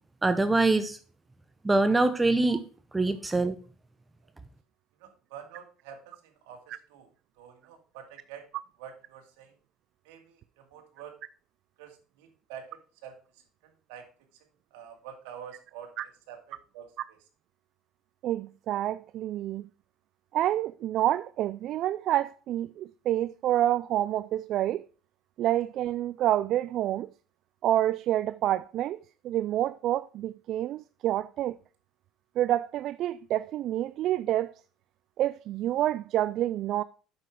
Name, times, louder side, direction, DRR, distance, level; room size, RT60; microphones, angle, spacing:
voice 1, 0.2-1.0 1.6-2.6 2.9-3.5, right 2 dB, 15° right, 0.7 m, -23 dB
voice 2, 5.0-7.1 7.4-8.4 8.8-9.5 10.0-11.2 11.8-13.2 13.9-14.0 14.7-15.9 16.3-16.9, right 8 dB, 85° right, 2.3 m, -47 dB
voice 3, 18.2-19.6 20.3-24.8 25.4-27.1 27.6-29.0 29.2-31.6 32.4-34.5 35.2-36.8, right 13 dB, 60° right, 0.3 m, -28 dB
8.1 x 6.7 x 4.8 m
supercardioid pair, 110°, 0 cm